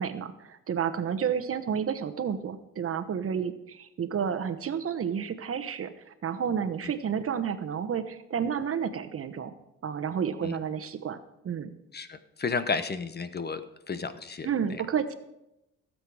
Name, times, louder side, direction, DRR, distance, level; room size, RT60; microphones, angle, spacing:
voice 1, 0.0-9.5 9.8-11.2 11.4-11.7 14.4-15.1, right 7 dB, 50° right, 11 dB, 1.1 m, -31 dB
voice 2, 11.9-13.6 13.9-14.5, left 4 dB, 35° left, 12 dB, 0.9 m, -32 dB
16.5 x 7.8 x 4.9 m, 0.88 s
cardioid pair, 90°, 30 cm